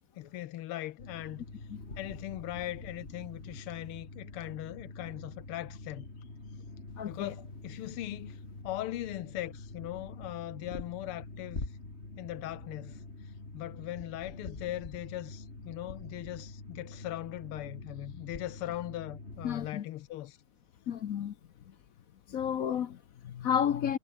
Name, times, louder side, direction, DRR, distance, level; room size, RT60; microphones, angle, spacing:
voice 1, 0.1-1.4 2.0-6.1 7.0-8.4 8.6-11.6 12.2-13.0 13.5-20.4, left 14 dB, 85° left, 1.7 m, -40 dB
sound 1, 1.0-19.7, left 2 dB, 30° left, 3.9 m, -45 dB
voice 2, 7.0-7.3 19.4-19.8 20.9-21.3 21.7-21.8 22.3-24.0, left 9 dB, 60° left, 0.9 m, -32 dB
omnidirectional pair, 2.4 m